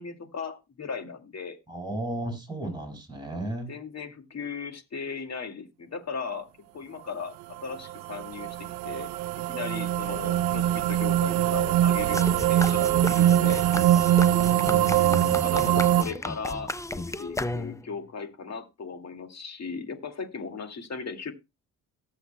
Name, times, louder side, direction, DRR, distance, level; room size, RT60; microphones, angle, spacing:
voice 1, 0.0-1.6 3.7-7.3 7.6-9.1 9.5-13.6 15.4-21.3, left 5 dB, 45° left, 6 dB, 2.3 m, -37 dB
voice 2, 1.7-3.7 14.5-15.8, right 2 dB, 10° right, 3 dB, 6.4 m, -34 dB
sound 1, 7.6-16.0, right 13 dB, 85° right, 0.5 m, -23 dB
sound 2, 12.1-18.0, left 2 dB, 10° left, 0.5 m, -34 dB
18.5 x 7.1 x 2.2 m, 0.25 s
cardioid pair, 75°, 36 cm